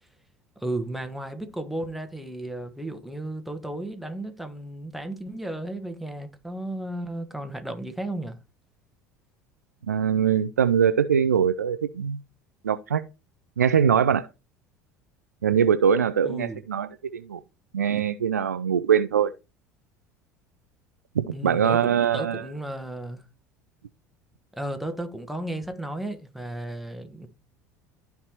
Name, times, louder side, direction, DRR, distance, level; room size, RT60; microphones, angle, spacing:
voice 1, 0.6-8.4 16.2-16.6 21.3-23.2 24.5-27.3, right 1 dB, ahead, 1.3 m, -34 dB
voice 2, 9.9-12.2 12.6-13.0 13.6-14.3 15.4-17.4 17.7-19.3 21.2-22.4, right 8 dB, 80° right, 0.4 m, -22 dB
13.0 x 4.6 x 2.9 m
figure-of-eight pair, 65°, 9 cm